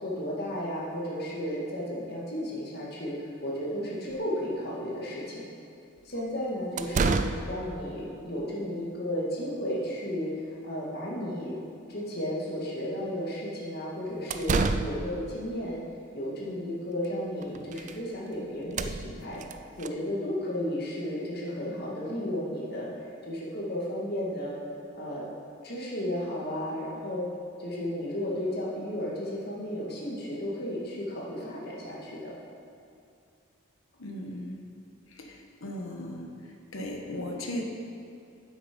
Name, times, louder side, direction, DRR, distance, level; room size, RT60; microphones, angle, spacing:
voice 1, 0.0-5.4 6.0-11.6 11.9-15.8 16.1-19.4 19.8-22.9 23.2-24.6 24.9-25.3 25.6-27.3 27.6-32.3, equal, 50° left, -5 dB, 2.1 m, -33 dB
sound 1, 4.2-4.3 6.1-6.2 6.8-7.6 14.1-15.2 17.0-17.1 17.4-18.0 18.3-18.4 18.6-19.9, right 4 dB, 35° right, 0.3 m, -29 dB
voice 2, 34.0-34.6 35.1-36.3 36.7-37.6, left 1 dB, 75° left, 1 dB, 1.2 m, -37 dB
9.5 x 7.9 x 5.3 m, 2.5 s
head